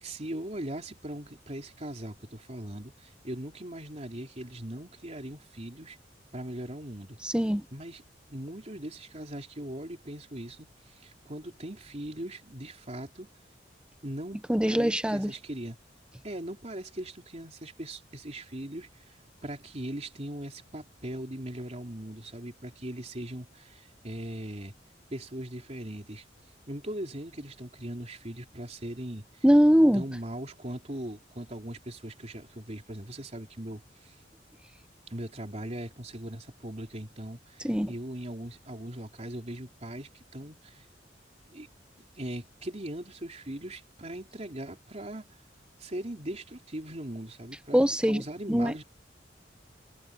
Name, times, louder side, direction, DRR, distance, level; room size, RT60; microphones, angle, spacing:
voice 1, 0.0-6.0 6.3-7.2 7.7-8.0 8.3-13.3 14.0-15.8 16.2-19.2 19.4-24.7 25.1-26.2 26.7-29.5 29.9-34.2 35.1-40.8 41.5-41.7 42.2-45.3 45.8-47.8 48.1-48.8, right 1 dB, 35° right, 3.7 m, -40 dB
voice 2, 7.2-7.6 14.5-15.3 29.4-30.0 37.6-37.9 47.7-48.2 48.5-48.7, equal, 5° right, 0.9 m, -22 dB
head